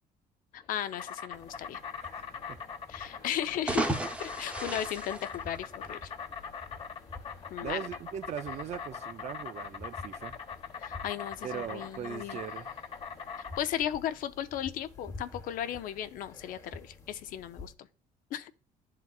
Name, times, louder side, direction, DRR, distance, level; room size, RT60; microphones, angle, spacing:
voice 1, 0.5-1.8 2.9-3.9 4.2-6.1 7.5-7.9 10.8-12.4 13.6-17.9 18.3-18.5, left 10 dB, 70° left, 0.6 m, -36 dB
Insect, 0.5-13.6, left 6 dB, 40° left, 1.1 m, -42 dB
sound 1, 1.3-17.7, left 3 dB, 25° left, 1.3 m, -51 dB
voice 2, 1.9-2.6 3.2-3.3 7.6-10.4 11.4-12.7, right 9 dB, 50° right, 0.5 m, -40 dB
sound 2, 3.5-6.1, right 2 dB, 10° right, 0.9 m, -34 dB
10.5 x 3.9 x 2.4 m
cardioid pair, 120°, 15 cm